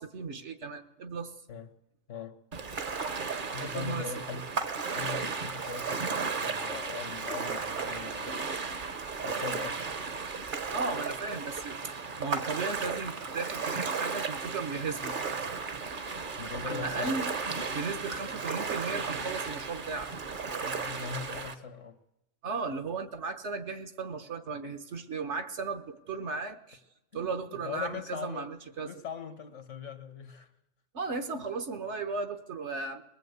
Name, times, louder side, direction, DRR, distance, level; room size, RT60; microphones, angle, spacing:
voice 1, 0.0-1.3 3.6-4.1 10.7-15.2 16.6-17.2 17.7-20.1 22.4-26.8 27.1-28.9 30.9-33.0, right 4 dB, 70° right, 7 dB, 1.5 m, -35 dB
Ocean, 2.5-21.5, right 5 dB, 45° right, 1.0 m, -35 dB
voice 2, 3.5-4.5 4.9-8.4 9.2-9.8 16.4-17.1 20.6-22.0 27.1-28.5 28.8-30.5, left 7 dB, 75° left, 10 dB, 1.7 m, -41 dB
20.5 x 20.0 x 8.1 m, 0.95 s
omnidirectional pair, 1.2 m